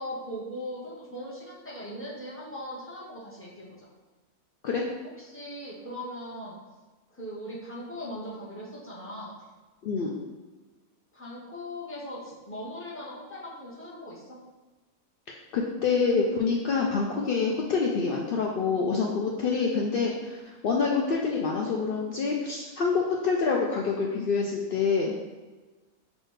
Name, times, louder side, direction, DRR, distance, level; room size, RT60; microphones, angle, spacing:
voice 1, 0.0-3.9 5.2-6.6 7.1-9.4 11.1-14.4, equal, 10° left, -6 dB, 0.8 m, -39 dB
voice 2, 15.5-25.2, left 5 dB, 90° left, -1 dB, 0.4 m, -26 dB
6.1 x 2.6 x 3.2 m, 1.3 s
omnidirectional pair, 1.5 m